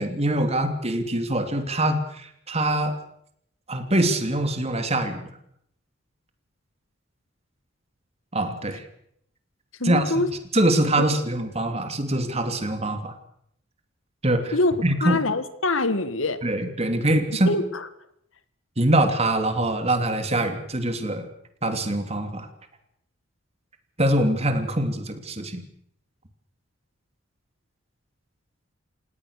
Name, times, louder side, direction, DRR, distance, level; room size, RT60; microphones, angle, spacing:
voice 1, 0.0-3.0 3.7-5.3 8.3-8.8 9.8-10.1 10.5-13.1 14.2-14.6 14.8-15.2 16.4-17.5 18.8-21.3 21.6-22.5 24.0-25.6, right 1 dB, 30° right, 7 dB, 2.9 m, -23 dB
voice 2, 9.8-10.3 14.5-14.8 15.0-16.4 17.5-17.9, left 2 dB, 75° left, 12 dB, 1.8 m, -24 dB
29.0 x 17.5 x 6.7 m, 0.72 s
head